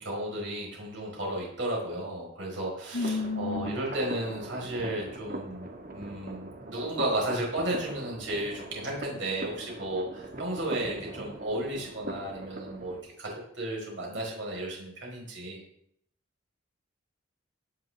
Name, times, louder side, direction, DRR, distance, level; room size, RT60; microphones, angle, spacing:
voice 1, 0.0-15.6, right 1 dB, 70° right, -2 dB, 4.7 m, -34 dB
voice 2, 2.9-3.8, left 3 dB, 60° left, 13 dB, 0.7 m, -31 dB
sound 1, 2.9-13.0, right 1 dB, 45° right, 1.6 m, -41 dB
16.5 x 9.8 x 3.5 m, 0.68 s
head